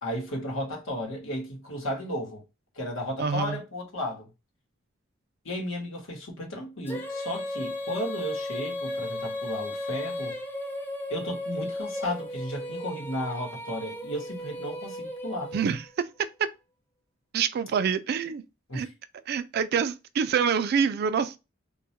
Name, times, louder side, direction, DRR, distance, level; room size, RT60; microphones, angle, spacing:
voice 1, 0.0-2.4 2.7-4.3 5.4-10.4 11.1-15.5 18.7-18.9, equal, 85° left, 1.0 m, -34 dB
voice 2, 3.2-3.6 15.5-15.8 17.3-18.4 18.7-18.9 19.3-21.4, right 6 dB, 55° right, 0.3 m, -26 dB
Female singing, 6.9-16.0, left 1 dB, 10° left, 0.4 m, -35 dB
2.2 x 2.1 x 2.7 m
head